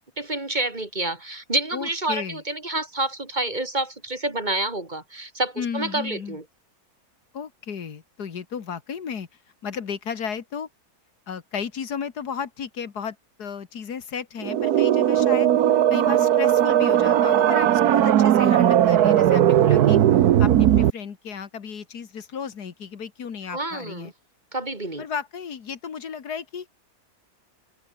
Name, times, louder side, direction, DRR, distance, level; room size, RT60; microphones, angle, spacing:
voice 1, 0.2-6.4 23.5-24.1 24.5-25.1, right 2 dB, 30° right, 2.6 m, -28 dB
voice 2, 1.7-2.4 5.6-6.4 7.3-9.3 9.6-10.7 11.3-15.5 15.9-24.1 25.0-26.7, left 7 dB, 85° left, 2.2 m, -34 dB
sound 1, 14.4-20.9, right 11 dB, 80° right, 1.4 m, -18 dB
omnidirectional pair, 1.6 m